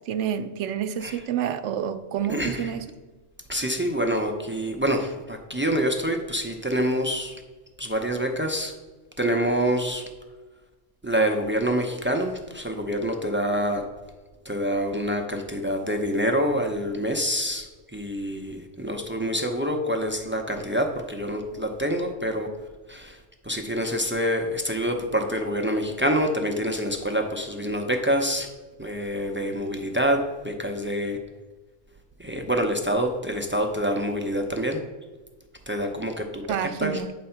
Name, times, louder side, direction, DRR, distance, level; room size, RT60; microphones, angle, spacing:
voice 1, 0.1-2.9 36.5-37.1, right 9 dB, 70° right, 10 dB, 0.8 m, -28 dB
voice 2, 2.3-2.7 3.5-7.3 7.8-8.7 9.2-10.0 11.0-13.8 14.5-17.7 17.9-22.5 22.9-23.2 23.5-28.5 28.8-31.2 32.2-34.8 35.7-36.4 36.8-36.9, equal, 15° right, 3 dB, 0.4 m, -26 dB
8.7 x 4.1 x 5.7 m, 1.3 s
omnidirectional pair, 1.3 m